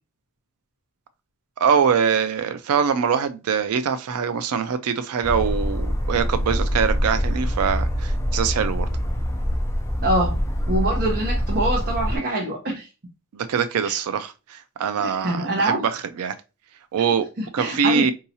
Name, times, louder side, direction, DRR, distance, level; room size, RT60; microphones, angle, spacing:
voice 1, 1.6-8.9 13.3-16.3 16.9-17.3 17.5-18.1, right 6 dB, 90° right, 0.4 m, -23 dB
sound 1, 5.2-12.2, equal, 10° left, 0.4 m, -24 dB
voice 2, 10.0-10.4 10.7-12.9 13.8-14.0 15.0-15.8 17.4-18.1, right 1 dB, 45° right, 0.9 m, -25 dB
4.6 x 2.8 x 2.7 m
head